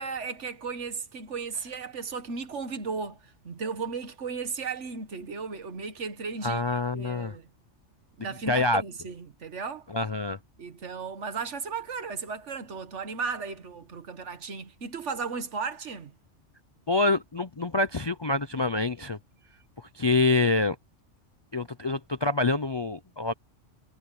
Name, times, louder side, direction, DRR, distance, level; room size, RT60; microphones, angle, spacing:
voice 1, 0.0-7.5 8.2-9.9 10.6-16.1, right 5 dB, 70° right, 1.7 m, -35 dB
voice 2, 6.4-7.4 8.5-8.8 9.9-10.4 16.9-19.2 19.8-20.8 21.5-23.3, left 2 dB, 35° left, 0.4 m, -26 dB
omnidirectional pair, 1.3 m